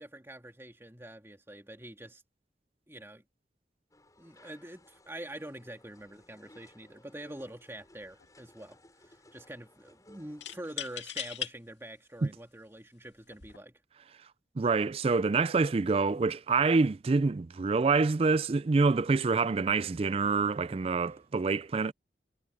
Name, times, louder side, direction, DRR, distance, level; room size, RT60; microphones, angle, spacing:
voice 1, 0.0-2.2 2.9-3.2 4.2-8.8 9.1-13.8, right 1 dB, 15° right, 2.5 m, -45 dB
sound 1, 3.9-10.8, left 1 dB, 20° left, 7.0 m, -60 dB
sound 2, 7.3-7.5 7.8-8.5 10.4-11.5 12.2-12.3 13.2-13.6, left 10 dB, 90° left, 2.3 m, -39 dB
voice 2, 14.6-21.9, right 4 dB, 35° right, 0.4 m, -26 dB
head